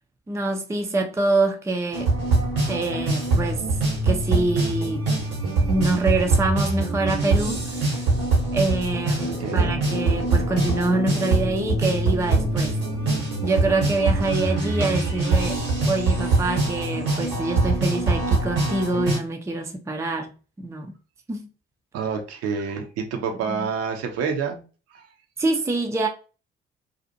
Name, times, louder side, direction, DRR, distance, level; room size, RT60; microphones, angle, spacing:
voice 1, 0.3-2.1 2.7-5.1 5.7-8.0 8.5-12.7 13.4-15.6 15.9-20.9 21.3-21.5 23.5-23.7 25.4-26.1, right 2 dB, 10° right, 0.5 m, -25 dB
sound 1, 1.9-19.2, right 3 dB, 75° right, 1.2 m, -23 dB
sound 2, 9.2-15.4, left 4 dB, 50° left, 0.7 m, -38 dB
voice 2, 9.4-9.8 21.9-24.6 24.9-25.1, right 6 dB, 55° right, 0.7 m, -28 dB
2.6 x 2.4 x 2.6 m
figure-of-eight pair, 45°, 29 cm